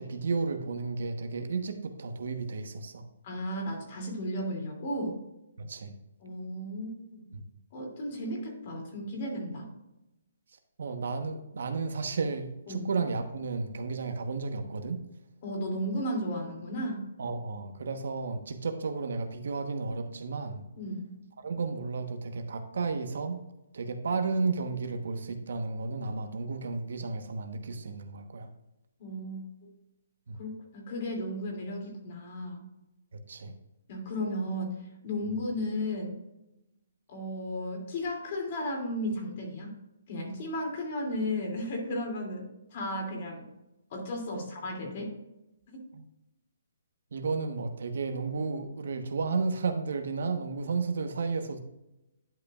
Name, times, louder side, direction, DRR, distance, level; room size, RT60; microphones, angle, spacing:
voice 1, 0.0-3.1 5.6-5.9 7.3-7.4 10.8-15.0 17.2-20.6 21.4-23.4 23.7-28.5 30.3-30.4 33.1-33.5 44.3-44.4 45.9-46.0 47.1-51.6, right 4 dB, 70° right, 7 dB, 1.1 m, -33 dB
voice 2, 3.2-5.2 6.2-6.9 7.7-9.7 12.7-12.9 15.4-17.1 20.8-21.2 29.0-29.4 30.4-32.6 33.9-34.8 35.0-36.2 37.1-39.8 40.1-43.4 43.9-45.1, left 1 dB, 40° left, 1 dB, 2.7 m, -34 dB
11.0 x 5.5 x 2.4 m, 0.92 s
hypercardioid pair, 165°, 0 cm